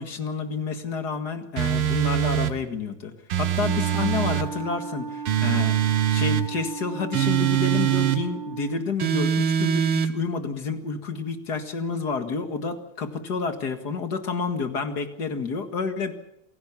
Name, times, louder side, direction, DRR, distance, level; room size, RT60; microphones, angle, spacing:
voice 1, 0.0-5.8 6.1-16.1, left 5 dB, 50° left, 7 dB, 2.3 m, -29 dB
sound 1, 1.6-2.6 3.3-4.5 5.2-6.5 7.1-8.2 9.0-10.1, right 10 dB, 80° right, 2.0 m, -23 dB
Wind instrument woodwind instrument, 3.5-8.9, right 6 dB, 60° right, 2.0 m, -35 dB
27.5 x 17.0 x 7.2 m, 0.83 s
omnidirectional pair, 2.4 m